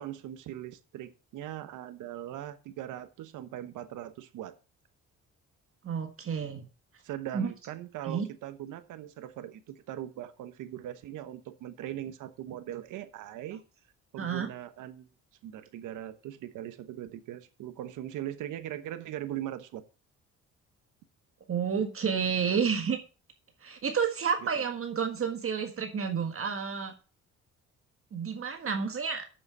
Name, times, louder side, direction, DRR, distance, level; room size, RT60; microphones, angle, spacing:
voice 1, 0.0-4.5 7.0-13.6 14.1-15.1 15.4-19.8 24.6-24.7, right 12 dB, 90° right, 11 dB, 1.2 m, -40 dB
voice 2, 5.8-6.6 7.3-7.5 8.0-8.3 14.2-14.5 21.5-23.0 23.6-26.9 28.1-29.2, right 6 dB, 45° right, 5 dB, 1.6 m, -30 dB
7.8 x 7.0 x 6.7 m, 0.35 s
cardioid pair, 90°, 30 cm